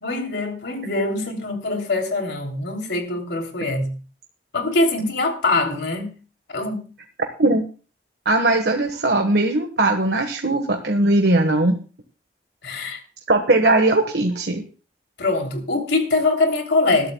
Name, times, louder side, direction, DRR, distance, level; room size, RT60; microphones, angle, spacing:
voice 1, 0.0-4.0 4.5-6.1 6.5-6.9 12.6-13.0 15.2-17.1, left 2 dB, 80° left, 3.1 m, -23 dB
voice 2, 8.2-11.8 13.3-14.6, right 2 dB, 75° right, 1.4 m, -19 dB
20.5 x 12.5 x 2.3 m
head